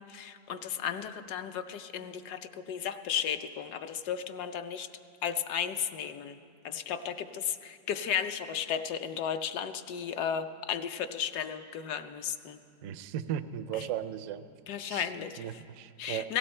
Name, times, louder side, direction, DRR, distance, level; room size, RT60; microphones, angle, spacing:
voice 1, 0.0-4.9 5.2-6.4 6.6-12.6 13.7-13.9 14.7-15.5 16.0-16.4, left 8 dB, 70° left, 9 dB, 1.1 m, -34 dB
voice 2, 12.8-14.4 14.9-15.1 15.4-16.3, right 10 dB, 80° right, 10 dB, 0.7 m, -36 dB
17.0 x 14.5 x 4.3 m, 2.3 s
omnidirectional pair, 2.0 m